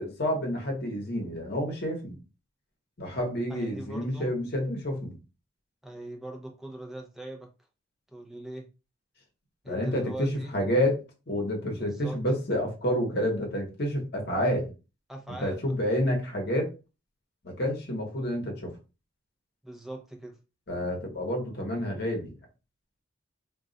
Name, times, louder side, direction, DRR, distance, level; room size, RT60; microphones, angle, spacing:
voice 1, 0.0-2.2 3.0-5.1 9.6-14.7 15.3-16.7 17.4-18.7 20.7-22.4, equal, 50° left, 0.9 m, -29 dB
voice 2, 3.5-4.3 5.8-7.5 8.1-8.7 9.6-10.6 11.7-12.2 15.1-15.6 19.6-20.4, right 1 dB, ahead, 0.5 m, -41 dB
2.3 x 2.2 x 3.8 m
head